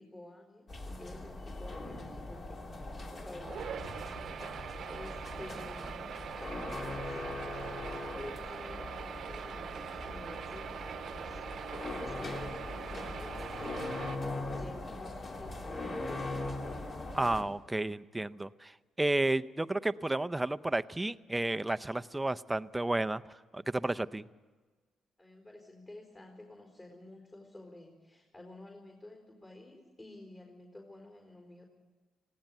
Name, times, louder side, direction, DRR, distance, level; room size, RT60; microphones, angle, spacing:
voice 1, 0.0-4.1 4.4-6.1 6.4-16.4 25.2-31.6, left 1 dB, 25° left, 1 dB, 4.3 m, -51 dB
sound 1, 0.7-17.4, left 2 dB, 40° left, 3.2 m, -41 dB
sound 2, 3.4-14.2, right 8 dB, 60° right, 1.0 m, -43 dB
voice 2, 17.1-23.2 23.5-24.2, right 2 dB, 10° right, 14 dB, 0.6 m, -32 dB
19.0 x 16.5 x 9.1 m, 1.3 s
cardioid pair, 90°, 0 cm